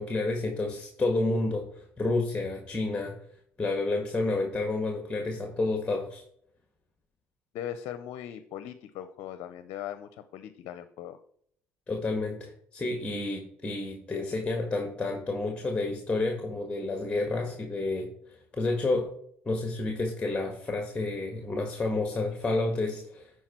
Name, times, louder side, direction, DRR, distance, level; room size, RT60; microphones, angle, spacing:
voice 1, 0.0-3.1 3.6-6.2 11.9-19.1 19.4-23.3, left 2 dB, 20° left, 3 dB, 1.7 m, -30 dB
voice 2, 7.5-11.2, left 10 dB, 70° left, 11 dB, 0.6 m, -39 dB
10.5 x 4.7 x 4.4 m, 0.65 s
supercardioid pair, 75°, 6 cm